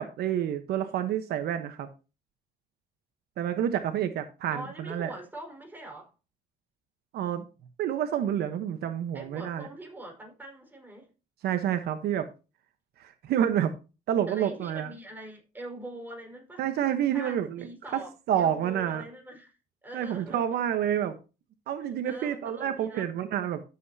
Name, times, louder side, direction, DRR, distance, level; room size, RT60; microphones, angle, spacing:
voice 1, 0.0-1.9 3.4-5.1 7.1-7.4 7.8-9.7 11.4-12.3 13.0-13.7 14.1-14.9 16.6-17.7 17.9-18.0 18.3-19.0 19.9-21.2 21.7-23.6, right 10 dB, 70° right, 1.1 m, -28 dB
voice 2, 4.5-6.1 9.1-11.1 14.3-16.6 17.1-20.4 21.8-23.1, right 1 dB, 10° right, 4.9 m, -43 dB
13.0 x 7.8 x 2.8 m
cardioid pair, 110°, 17 cm